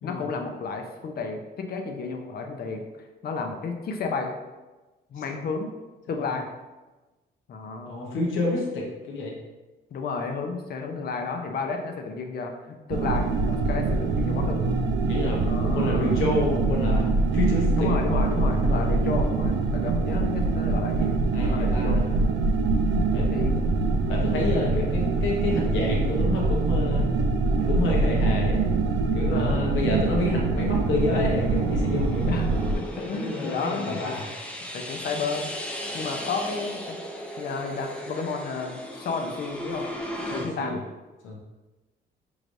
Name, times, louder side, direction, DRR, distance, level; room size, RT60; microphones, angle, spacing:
voice 1, 0.0-2.8 3.2-4.3 5.1-5.7 6.1-6.5 7.5-8.2 9.9-14.6 15.3-16.2 17.8-22.1 22.9-23.6 29.3-29.7 32.2-34.2 34.7-35.5 35.9-37.0 37.4-39.9 40.3-40.8, left 4 dB, 50° left, 4 dB, 0.6 m, -32 dB
voice 2, 7.8-9.3 14.3-14.4 15.1-17.1 17.3-17.9 18.7-19.0 21.3-22.1 23.1-23.3 24.1-27.1 27.6-28.6 29.1-32.3 33.0-34.3 40.3-40.8 41.2-41.4, left 2 dB, 80° left, -2 dB, 0.9 m, -29 dB
sound 1, 12.9-32.8, right 3 dB, 70° right, 0.5 m, -24 dB
sound 2, 30.4-40.5, equal, 5° left, 0.5 m, -37 dB
4.8 x 3.2 x 2.6 m, 1.2 s
cardioid pair, 90°, 20 cm